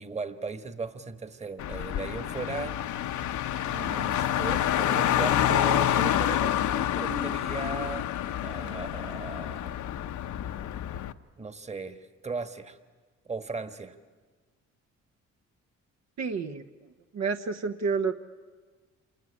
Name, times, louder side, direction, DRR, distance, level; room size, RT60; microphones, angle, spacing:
voice 1, 0.0-2.8 3.7-8.1 8.4-9.7 11.3-12.8 13.2-14.0, right 4 dB, 20° right, 9 dB, 1.5 m, -37 dB
Car, 1.6-11.1, left 11 dB, 75° left, 0.9 m, -28 dB
voice 2, 16.2-16.6 17.1-18.1, right 5 dB, 60° right, 6 dB, 1.1 m, -29 dB
27.0 x 20.5 x 9.9 m, 1.5 s
cardioid pair, 90°, 30 cm